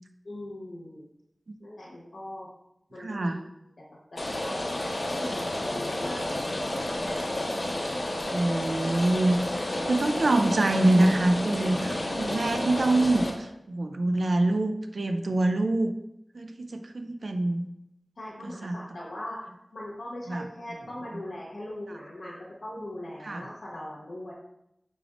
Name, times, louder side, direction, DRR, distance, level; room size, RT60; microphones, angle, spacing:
voice 1, 0.2-1.1 1.6-2.5 2.9-3.4 3.8-3.9 4.1-4.7 5.2-6.2 6.5-7.1 7.7-8.1 18.2-24.3, left 1 dB, 85° left, -6 dB, 1.0 m, -40 dB
voice 2, 3.0-3.4 8.3-9.4 9.9-15.9 16.3-17.7 18.4-18.8 20.3-20.4 23.2-23.4, right 2 dB, 75° right, 7 dB, 0.3 m, -25 dB
Rain, 4.2-13.3, left 1 dB, 65° left, 0.8 m, -31 dB
6.0 x 3.4 x 2.4 m, 0.83 s
wide cardioid pair, 55°, 0 cm